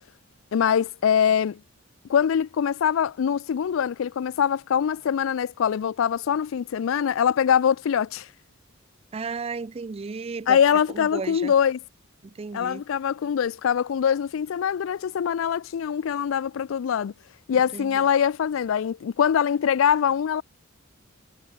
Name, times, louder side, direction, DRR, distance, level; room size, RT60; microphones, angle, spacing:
voice 1, 0.5-1.6 2.1-8.3 10.5-11.8 12.5-17.1 17.5-20.4, left 8 dB, 70° left, 0.3 m, -23 dB
voice 2, 9.1-11.5 12.2-12.8 17.7-18.0, right 4 dB, 30° right, 0.4 m, -34 dB
head